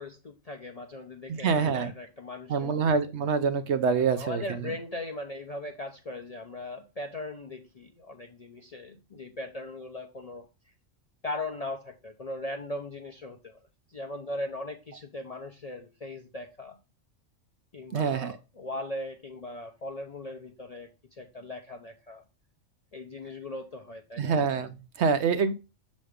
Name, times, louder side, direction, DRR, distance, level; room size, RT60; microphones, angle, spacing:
voice 1, 0.0-2.8 3.9-10.5 11.2-13.6 13.9-16.8 17.7-22.2 22.9-24.4, left 2 dB, 45° left, 3 dB, 0.5 m, -39 dB
voice 2, 1.3-1.9 2.5-4.4 17.9-18.3 24.2-25.5, right 5 dB, 65° right, 10 dB, 0.8 m, -26 dB
6.8 x 3.2 x 4.9 m, 0.29 s
omnidirectional pair, 1.4 m